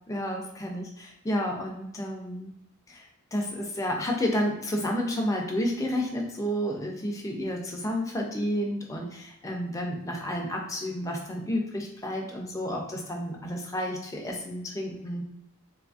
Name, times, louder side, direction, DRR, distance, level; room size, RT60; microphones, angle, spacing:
voice 1, 0.1-2.5 2.9-15.2, equal, 15° left, 0 dB, 0.5 m, -31 dB
3.8 x 2.5 x 2.4 m, 0.84 s
head